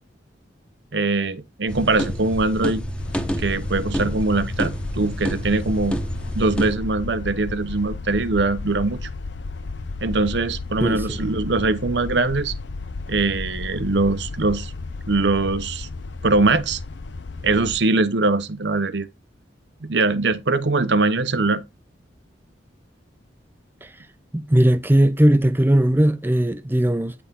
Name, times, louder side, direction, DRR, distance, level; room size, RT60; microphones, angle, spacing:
voice 1, 0.9-2.8 3.4-6.0 6.3-9.1 10.0-12.5 13.1-14.7 15.1-15.9 16.2-16.8 17.4-19.1 19.8-21.6, right 3 dB, 70° right, 1.0 m, -22 dB
Shower leaking, 1.7-6.8, equal, 5° left, 1.2 m, -29 dB
sound 1, 3.0-17.8, left 3 dB, 75° left, 0.7 m, -33 dB
voice 2, 10.8-11.2 23.8-23.9 24.3-27.1, right 1 dB, 10° right, 0.6 m, -18 dB
9.6 x 6.1 x 3.7 m
head